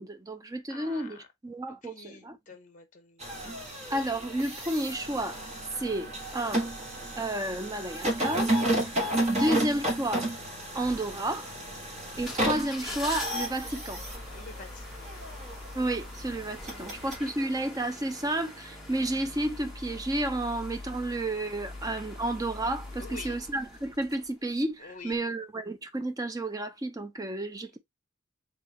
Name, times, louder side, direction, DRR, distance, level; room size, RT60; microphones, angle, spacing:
voice 1, 0.0-2.4 3.9-5.4 5.8-6.7 7.2-8.5 8.8-8.9 9.3-10.3 10.7-11.5 12.2-14.0 15.7-27.8, right 1 dB, 15° right, 0.6 m, -31 dB
voice 2, 0.7-1.3 1.7-3.3 14.3-15.1 16.6-17.0 23.0-23.4 24.8-25.2, left 4 dB, 40° left, 0.9 m, -47 dB
sound 1, 3.2-17.2, right 1 dB, 35° right, 1.5 m, -32 dB
sound 2, 12.1-24.6 25.1-25.2, left 2 dB, ahead, 1.3 m, -42 dB
3.6 x 3.3 x 3.2 m
head